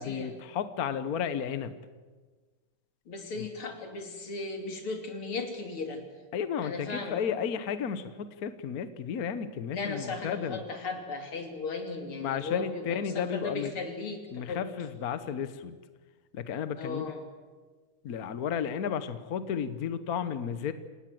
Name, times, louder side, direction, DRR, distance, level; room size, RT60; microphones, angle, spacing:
voice 1, 0.0-1.7 3.4-3.5 6.3-10.6 12.2-13.7 14.3-15.8 16.3-17.1 18.0-20.7, left 7 dB, 55° left, 12 dB, 1.2 m, -33 dB
voice 2, 3.1-6.0 6.6-7.2 9.7-14.6 16.8-17.2, left 3 dB, 75° left, 4 dB, 3.7 m, -36 dB
28.5 x 18.0 x 7.7 m, 1.4 s
omnidirectional pair, 2.4 m